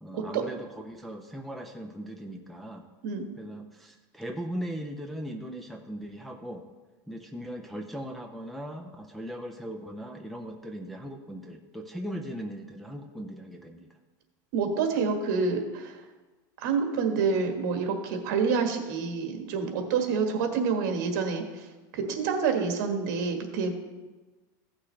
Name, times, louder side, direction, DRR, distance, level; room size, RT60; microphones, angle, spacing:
voice 1, 0.0-2.8 3.4-6.7 7.1-13.9, equal, ahead, 1 dB, 0.4 m, -39 dB
voice 2, 14.5-15.9 16.6-21.4 21.9-23.7, right 5 dB, 60° right, 4 dB, 1.5 m, -27 dB
15.5 x 6.1 x 3.3 m, 1.2 s
supercardioid pair, 170°, 11 cm